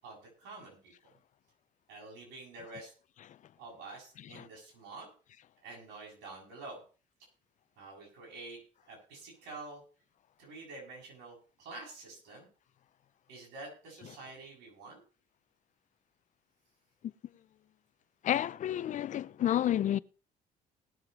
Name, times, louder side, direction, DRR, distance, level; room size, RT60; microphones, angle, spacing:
voice 1, 0.0-0.9 1.9-2.9 3.6-5.1 5.6-6.8 7.8-8.6 8.9-9.8 10.4-12.5 13.3-15.0, right 3 dB, 85° right, 8.0 m, -48 dB
voice 2, 18.2-20.0, left 11 dB, 45° left, 0.6 m, -30 dB
19.0 x 7.5 x 4.6 m
cardioid pair, 110°, 17 cm